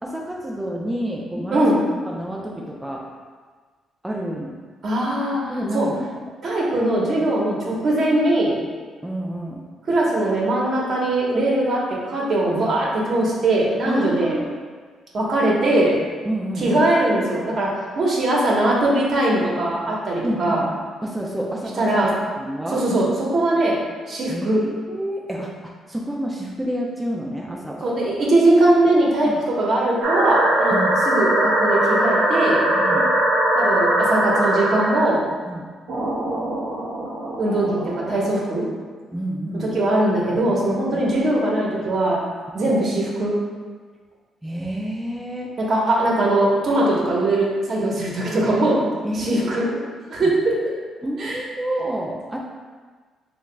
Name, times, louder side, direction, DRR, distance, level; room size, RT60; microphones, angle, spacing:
voice 1, 0.0-1.7 2.0-3.1 4.0-4.5 5.5-6.3 9.0-9.6 13.8-14.6 16.2-16.8 20.2-20.7 21.0-22.1 22.4-23.0 24.3-27.9 29.2-29.4 30.7-30.9 32.7-33.1 35.5-35.7 39.1-39.7 40.9-41.2 42.6-42.8 44.4-45.5 49.0-49.9 50.2-50.3 51.0-52.4, right 1 dB, 10° right, -3 dB, 0.5 m, -29 dB
voice 2, 4.8-5.4 5.7-5.9 6.4-8.5 9.9-14.4 15.1-15.9 16.6-17.7 18.0-20.6 21.8-22.1 22.7-23.1 23.3-23.8 24.1-24.6 27.8-29.3 29.6-30.7 31.0-32.6 33.6-35.2 37.4-38.6 39.7-42.2 42.5-43.3 45.7-48.8 49.2-49.6 50.1-50.5 51.2-51.4, right 1 dB, 55° right, -4 dB, 1.1 m, -20 dB
sound 1, 30.0-35.1 35.9-38.3, right 1 dB, 80° right, 0.9 m, -21 dB
7.1 x 2.4 x 2.2 m, 1.5 s
cardioid pair, 90°, 0 cm